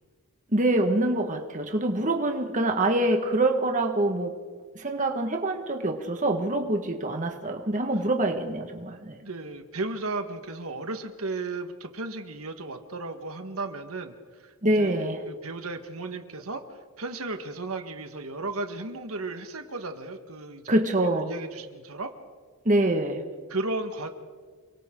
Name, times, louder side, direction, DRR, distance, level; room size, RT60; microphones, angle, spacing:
voice 1, 0.5-4.4 4.8-9.2 14.6-15.2 20.7-21.3 22.7-23.2, right 1 dB, 35° right, 4 dB, 1.7 m, -25 dB
voice 2, 9.2-16.6 17.0-22.1 23.5-24.1, right 3 dB, 80° right, 6 dB, 1.6 m, -35 dB
28.5 x 23.5 x 3.9 m, 1.5 s
head